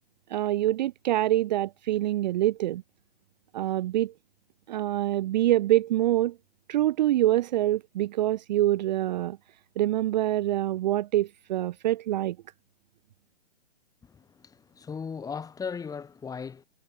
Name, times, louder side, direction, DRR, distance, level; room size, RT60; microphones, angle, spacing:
voice 1, 0.3-2.8 3.5-4.1 4.7-6.4 6.7-9.4 9.8-12.4, right 14 dB, 45° right, 0.7 m, -25 dB
voice 2, 14.0-16.6, left 6 dB, 10° left, 4.3 m, -37 dB
hypercardioid pair, 125°, 31 cm